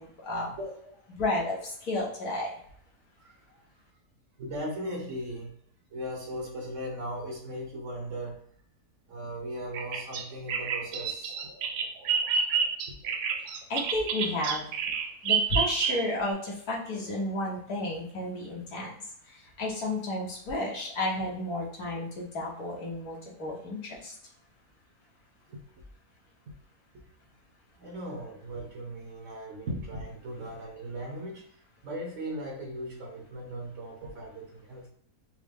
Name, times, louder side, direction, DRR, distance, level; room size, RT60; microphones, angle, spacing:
voice 1, 0.0-0.5 1.2-2.6 13.7-14.7 15.2-18.9 19.3-24.1, left 1 dB, 70° left, -3 dB, 1.6 m, -32 dB
voice 2, 0.6-1.1 3.2-3.6 4.4-5.5 5.9-8.4 9.1-11.5 12.9-13.0 25.5-25.8 26.5-26.6 26.9-27.0 27.8-34.9, equal, 60° right, 1 dB, 1.0 m, -38 dB
Bird vocalization bird call bird song, 9.7-16.3, right 6 dB, 85° right, 1.1 m, -29 dB
4.4 x 2.1 x 3.3 m, 0.64 s
omnidirectional pair, 1.7 m